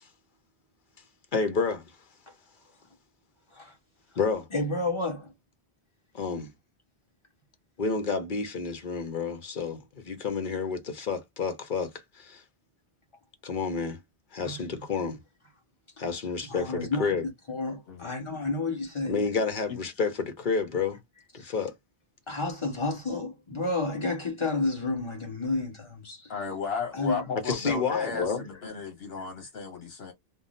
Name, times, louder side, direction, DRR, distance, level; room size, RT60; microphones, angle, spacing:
voice 1, 1.3-1.8 4.2-4.5 6.1-6.5 7.8-12.4 13.4-14.0 14.3-15.2 16.0-17.2 19.0-21.0 21.3-21.7 27.4-28.4 28.7-28.8, left 4 dB, 55° left, 0.9 m, -30 dB
voice 2, 4.5-5.3 14.4-14.6 16.5-17.1 17.5-19.2 21.4-21.5 22.3-26.3 26.9-27.2, left 2 dB, 30° left, 1.2 m, -31 dB
voice 3, 26.3-30.1, left 5 dB, 80° left, 1.1 m, -34 dB
3.6 x 2.0 x 2.5 m
omnidirectional pair, 1.0 m